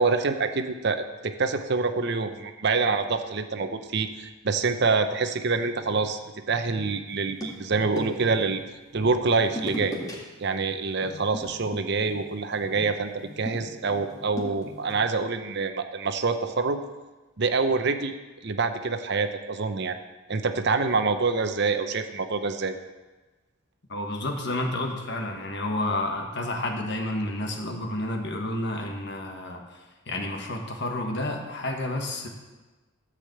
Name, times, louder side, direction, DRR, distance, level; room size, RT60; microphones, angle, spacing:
voice 1, 0.0-6.2 6.5-8.6 8.9-9.9 10.4-16.8 17.4-18.1 18.4-20.0 20.3-22.7, right 4 dB, 55° right, 8 dB, 0.7 m, -26 dB
sound 1, 7.1-8.4 9.4-10.1 10.4-10.7 11.0-15.0, equal, 15° left, 2.0 m, -37 dB
voice 2, 23.9-29.8 30.1-32.3, left 1 dB, 55° left, 3 dB, 1.5 m, -30 dB
13.5 x 5.0 x 7.8 m, 1.2 s
head